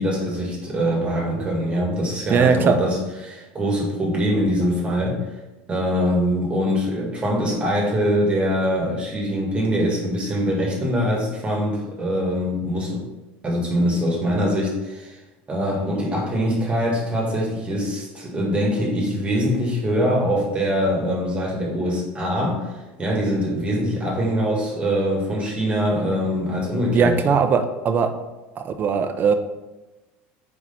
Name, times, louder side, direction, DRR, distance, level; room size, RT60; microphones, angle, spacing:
voice 1, 0.0-5.2 5.7-13.1 13.4-15.2 15.5-27.4, equal, 20° right, -2 dB, 2.0 m, -23 dB
voice 2, 2.3-2.8 26.9-28.1 28.6-29.3, right 6 dB, 35° right, 8 dB, 0.7 m, -19 dB
4.8 x 4.8 x 5.6 m, 1.1 s
supercardioid pair, 110°, 5 cm